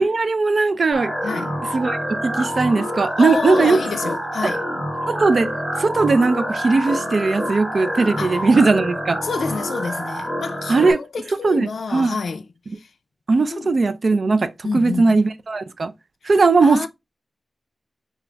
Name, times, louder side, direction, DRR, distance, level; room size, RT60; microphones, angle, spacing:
voice 1, 0.0-1.1 1.7-2.0 2.2-3.8 4.4-4.5 5.1-5.5 5.8-9.2 10.7-11.0 11.4-11.7 11.9-12.2 13.3-15.9 16.3-16.9, right 3 dB, 50° right, 0.5 m, -18 dB
sound 1, 0.9-10.9, equal, 5° right, 1.7 m, -27 dB
voice 2, 1.2-1.5 3.2-4.7 8.2-8.5 9.2-12.5 12.7-12.9 13.5-13.7 14.6-15.2 16.3-16.9, left 4 dB, 85° left, 0.4 m, -28 dB
6.2 x 2.4 x 3.3 m
wide cardioid pair, 125°, 0 cm